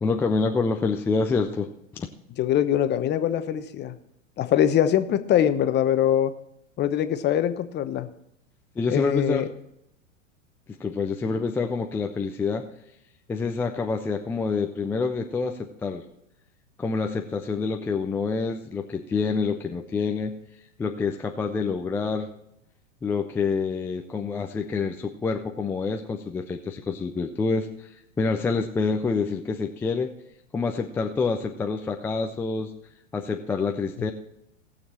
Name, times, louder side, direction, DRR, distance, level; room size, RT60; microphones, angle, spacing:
voice 1, 0.0-1.7 1.9-2.1 8.8-9.4 10.8-12.6 13.3-16.0 16.8-20.3 20.8-22.3 23.0-30.1 30.5-32.7 33.1-34.1, left 4 dB, 5° left, 3 dB, 0.3 m, -27 dB
voice 2, 2.4-3.9 4.4-6.3 6.8-8.1 8.9-9.5, left 10 dB, 25° left, 11 dB, 0.9 m, -23 dB
18.0 x 6.8 x 4.2 m, 0.78 s
hypercardioid pair, 105°, 39 cm